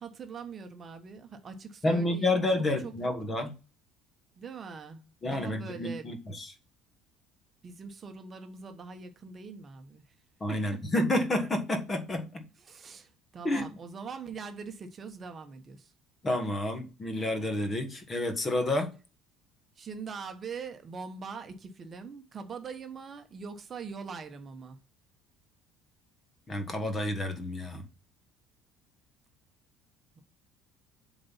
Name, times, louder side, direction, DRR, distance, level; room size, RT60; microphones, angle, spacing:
voice 1, 0.0-2.9 4.4-6.1 7.6-10.1 10.5-10.8 12.6-15.9 19.8-24.8, right 5 dB, 30° right, 1.1 m, -42 dB
voice 2, 1.8-3.5 5.2-6.5 10.4-12.4 13.4-13.7 16.2-18.9 26.5-27.8, left 1 dB, 20° left, 1.4 m, -29 dB
7.6 x 4.0 x 5.6 m
cardioid pair, 145°, 0 cm